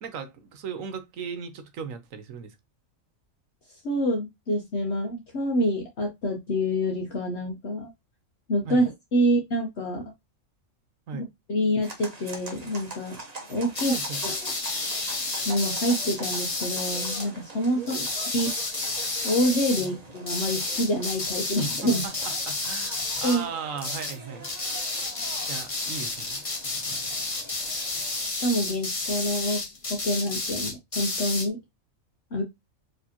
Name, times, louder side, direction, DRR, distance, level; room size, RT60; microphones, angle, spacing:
voice 1, 0.0-2.5 8.6-8.8 11.1-11.3 13.9-14.2 17.7-18.1 19.7-19.9 21.8-22.1 22.5-24.5 25.5-26.4, right 6 dB, 70° right, 1.2 m, -37 dB
voice 2, 3.8-7.9 8.5-10.0 11.1-13.2 13.5-14.0 14.2-14.5 15.4-17.8 18.3-18.5 19.2-22.0 23.2-23.4 28.2-29.6 29.9-31.6 32.3-32.4, equal, 55° left, 1.2 m, -27 dB
sound 1, 11.8-28.3, right 2 dB, 35° right, 0.9 m, -44 dB
sound 2, 13.7-17.3 17.9-19.9 20.3-23.5 23.8-24.2 24.4-31.5, left 2 dB, 25° left, 1.1 m, -31 dB
4.8 x 3.4 x 2.8 m
omnidirectional pair, 1.4 m